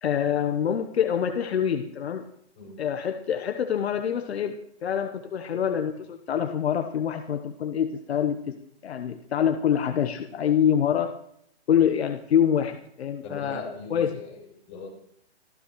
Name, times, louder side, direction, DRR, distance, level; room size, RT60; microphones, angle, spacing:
voice 1, 0.0-2.3 2.8-4.5 4.8-8.6 8.8-11.2 11.7-13.6 13.9-14.1, left 8 dB, 70° left, 6 dB, 1.1 m, -25 dB
voice 2, 13.2-14.9, left 3 dB, 30° left, -3 dB, 6.7 m, -40 dB
25.0 x 14.5 x 3.1 m, 0.71 s
hypercardioid pair, 155°, 33 cm